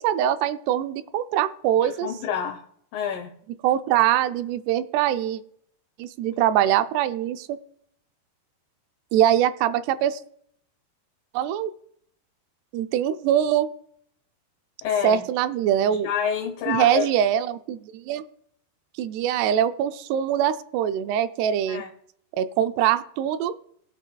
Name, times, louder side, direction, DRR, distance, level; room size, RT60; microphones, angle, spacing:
voice 1, 0.0-2.1 3.6-5.4 6.0-7.6 9.1-10.2 11.3-11.7 12.7-13.7 15.0-16.1 16.7-18.2 19.0-21.8 22.4-23.6, right 10 dB, 85° right, 10 dB, 2.6 m, -23 dB
voice 2, 1.8-2.6 2.9-3.3 14.8-15.2 15.9-17.1 21.7-21.9, left 8 dB, 70° left, 4 dB, 2.4 m, -28 dB
20.5 x 8.3 x 2.3 m, 0.66 s
omnidirectional pair, 4.7 m